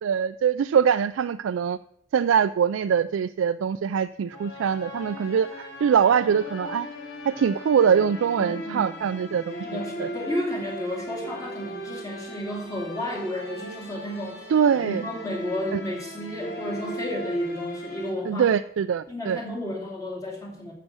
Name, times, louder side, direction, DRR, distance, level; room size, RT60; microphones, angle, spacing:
voice 1, 0.0-1.8 2.1-6.9 7.2-10.1 14.5-15.0 15.7-15.8 18.3-19.4, right 7 dB, 90° right, 11 dB, 0.3 m, -23 dB
sound 1, 4.3-18.1, equal, 60° left, 2.8 m, -37 dB
voice 2, 8.4-8.9 9.6-14.4 14.8-18.5 19.1-20.7, left 1 dB, 20° left, -2 dB, 2.8 m, -32 dB
11.5 x 7.5 x 6.2 m, 0.75 s
head